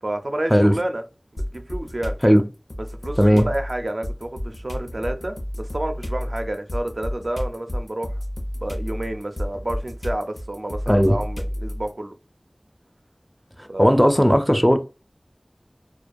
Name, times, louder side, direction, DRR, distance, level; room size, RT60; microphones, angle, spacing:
voice 1, 0.0-1.0 1.3-2.2 2.9-8.2 8.6-12.1 13.7-14.0, right 1 dB, 70° right, 0.4 m, -30 dB
sound 1, 1.4-2.2 2.7-11.9, equal, 75° left, 0.6 m, -30 dB
voice 2, 10.9-11.2 13.6-14.8, equal, ahead, 0.4 m, -16 dB
2.3 x 2.2 x 2.5 m
wide cardioid pair, 45°, 0 cm